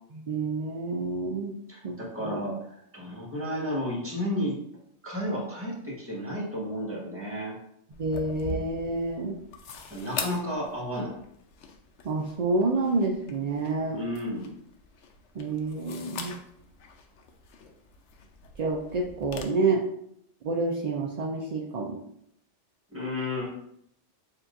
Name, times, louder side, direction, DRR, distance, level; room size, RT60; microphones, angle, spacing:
voice 1, 0.1-1.5 1.8-2.4 8.0-9.4 12.0-14.0 15.3-16.4 18.6-19.8 20.4-22.0, right 3 dB, 55° right, 0 dB, 0.4 m, -28 dB
voice 2, 1.7-4.6 5.0-7.5 9.9-11.1 13.9-14.5 22.9-23.6, left 1 dB, 10° right, -5 dB, 1.3 m, -32 dB
sound 1, 7.9-19.4, left 4 dB, 80° left, 0.9 m, -42 dB
6.9 x 2.8 x 2.5 m, 0.74 s
omnidirectional pair, 1.2 m